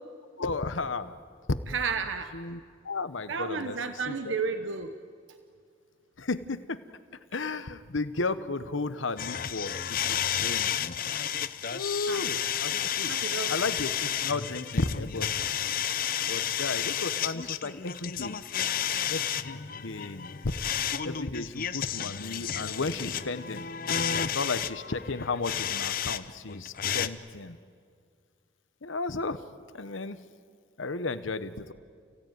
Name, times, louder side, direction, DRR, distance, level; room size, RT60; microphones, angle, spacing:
voice 1, 0.4-1.1 2.3-4.3 6.2-6.8 7.3-10.7 11.7-13.1 13.5-15.3 16.2-18.4 19.1-20.3 21.0-23.7 24.2-27.6 28.8-29.4 29.7-30.2 30.8-31.7, left 3 dB, 85° left, 12 dB, 1.1 m, -34 dB
voice 2, 1.7-2.3 3.3-4.9 12.1-12.2 13.1-13.5, right 5 dB, 75° right, 8 dB, 1.0 m, -32 dB
sound 1, 9.2-26.2 26.5-27.1, left 9 dB, 45° left, 0.7 m, -31 dB
30.0 x 16.5 x 9.3 m, 2.1 s
head